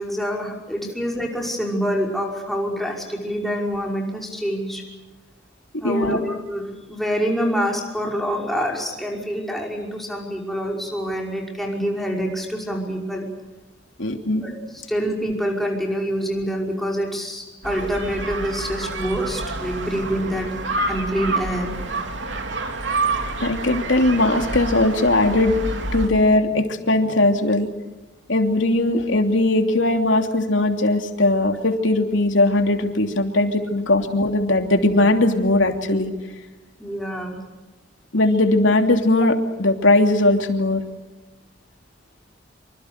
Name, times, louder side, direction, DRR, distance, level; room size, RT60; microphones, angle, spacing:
voice 1, 0.0-4.8 5.8-13.3 14.4-20.5 20.9-21.8 36.8-37.4, equal, ahead, -1 dB, 5.5 m, -26 dB
voice 2, 5.7-6.2 14.0-14.4 23.4-25.6 25.9-27.7 28.3-36.1 38.1-40.8, left 2 dB, 80° left, 5 dB, 3.0 m, -19 dB
sound 1, 17.6-26.1, right 2 dB, 70° right, 3.1 m, -28 dB
26.5 x 26.0 x 6.7 m, 1.1 s
head